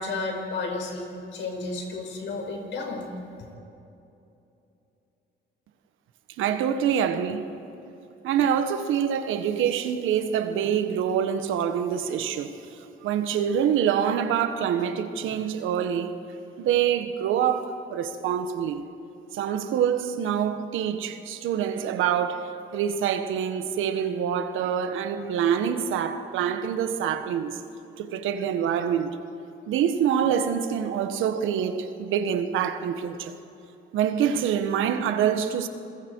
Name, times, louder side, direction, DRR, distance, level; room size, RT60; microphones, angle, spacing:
voice 1, 0.0-3.1, left 3 dB, 70° left, 5.0 m, -32 dB
voice 2, 6.4-7.5 8.2-16.1 16.6-18.8 19.3-27.6 28.0-29.2 29.7-33.4 33.9-35.7, right 8 dB, 90° right, 1.4 m, -26 dB
27.5 x 21.5 x 4.7 m
cardioid pair, 90°, 20 cm